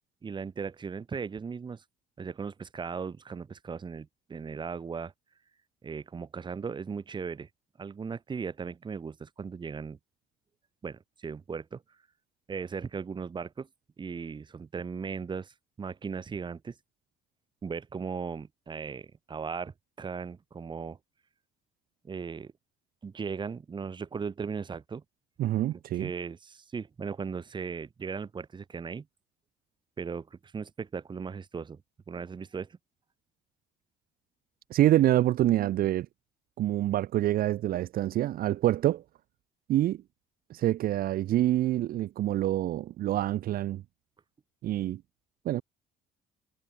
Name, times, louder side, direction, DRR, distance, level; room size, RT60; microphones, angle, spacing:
voice 1, 0.2-1.8 2.2-5.1 5.8-7.5 7.8-10.0 10.8-11.8 12.5-13.7 14.0-16.8 17.6-21.0 22.0-22.5 23.0-25.0 25.9-29.1 30.0-31.8 32.1-32.8, right 5 dB, 25° right, 1.2 m, -37 dB
voice 2, 25.4-26.1 34.7-36.1 36.6-39.0 39.7-40.0 40.5-43.8 44.6-45.0 45.4-45.6, right 13 dB, 60° right, 0.7 m, -26 dB
cardioid pair, 110°, 17 cm